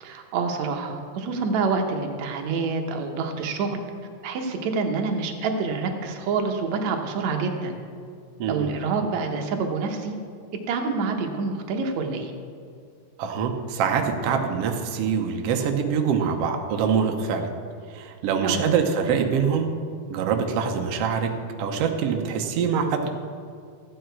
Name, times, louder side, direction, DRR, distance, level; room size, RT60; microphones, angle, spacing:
voice 1, 0.0-3.8 4.2-7.8 8.5-10.2 10.7-12.3 18.4-18.7, right 4 dB, 65° right, 3 dB, 2.0 m, -27 dB
voice 2, 8.4-8.7 13.2-17.5 17.9-19.7 20.1-21.3 21.6-23.1, right 6 dB, 85° right, 4 dB, 1.3 m, -24 dB
14.0 x 8.8 x 4.5 m, 2.3 s
omnidirectional pair, 3.8 m